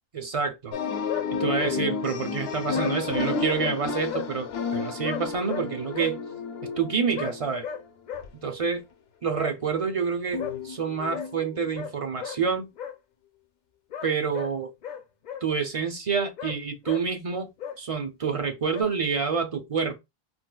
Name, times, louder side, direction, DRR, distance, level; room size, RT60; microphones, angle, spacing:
voice 1, 0.1-0.7 1.4-6.2 6.8-7.6 8.4-8.8 9.2-12.7 14.0-14.7 15.4-17.5 17.8-20.0, right 5 dB, 45° right, 0.5 m, -28 dB
sound 1, 0.7-8.3 10.3-11.7 12.1-12.2, left 5 dB, 80° left, 0.9 m, -32 dB
sound 2, 1.1-1.3 1.6-1.8 2.7-3.3 3.6-3.8 4.1-4.3 5.0-6.1 7.1-7.3 7.6-7.8 8.1-8.3 9.3-9.5 10.4-10.5 11.1-11.3 11.7-11.9 12.2-12.4 12.8-13.0 13.9-14.5 14.8-15.4 16.4-16.6 16.8-17.0 17.6-17.8 18.7-18.8, left 7 dB, 55° left, 0.6 m, -35 dB
4.3 x 2.2 x 2.2 m
omnidirectional pair, 1.0 m